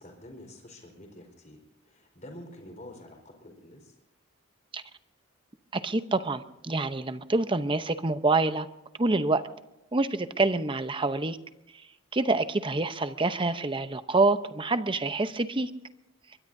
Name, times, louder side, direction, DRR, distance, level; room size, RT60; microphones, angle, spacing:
voice 1, 0.0-3.9, left 1 dB, 35° left, 3 dB, 4.4 m, -48 dB
voice 2, 5.7-8.7 9.0-9.4 9.9-11.4 12.1-15.7, right 3 dB, 25° right, 11 dB, 0.8 m, -26 dB
24.0 x 22.0 x 2.7 m, 0.91 s
head